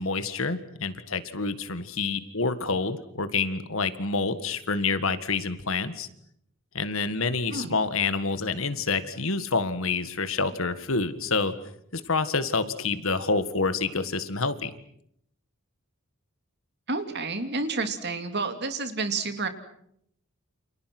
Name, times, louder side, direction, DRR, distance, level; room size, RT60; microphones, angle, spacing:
voice 1, 0.0-6.1 6.7-11.5 11.9-14.7, left 4 dB, 70° left, 12 dB, 1.8 m, -27 dB
voice 2, 16.9-19.5, right 3 dB, 50° right, 8 dB, 2.7 m, -30 dB
29.5 x 27.5 x 6.1 m, 0.73 s
head